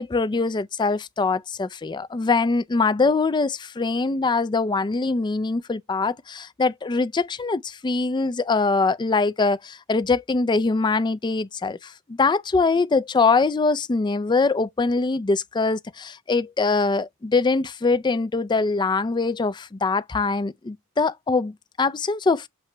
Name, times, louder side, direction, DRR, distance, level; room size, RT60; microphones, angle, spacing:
voice 1, 0.0-22.5, left 3 dB, 20° left, 0.3 m, -23 dB
7.3 x 3.0 x 2.2 m
head